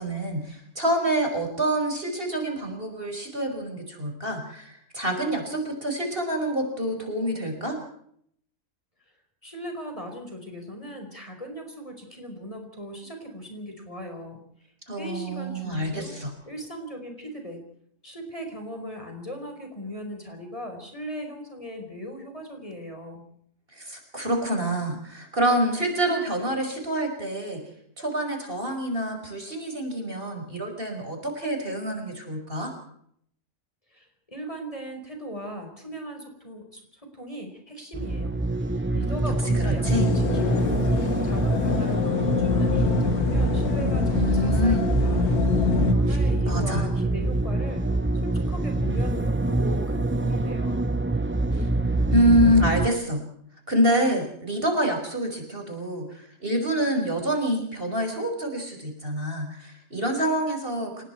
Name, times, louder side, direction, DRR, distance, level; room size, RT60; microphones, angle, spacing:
voice 1, 0.0-7.8 14.9-16.3 23.7-27.6 28.0-32.7 39.3-40.0 44.1-44.9 46.1-46.2 46.5-46.8 51.5-51.7 52.1-53.2 53.7-61.0, right 1 dB, 40° right, 4 dB, 5.5 m, -26 dB
voice 2, 9.4-16.1 16.4-17.6 18.0-23.2 33.9-38.4 38.9-40.9 41.2-45.3 45.9-47.8 48.2-50.9, equal, 20° left, 3 dB, 5.0 m, -38 dB
sound 1, 37.9-52.9, right 2 dB, 15° right, 0.4 m, -25 dB
sound 2, 39.8-45.9, left 7 dB, 80° left, 1.9 m, -27 dB
29.5 x 20.0 x 4.6 m, 0.67 s
omnidirectional pair, 1.6 m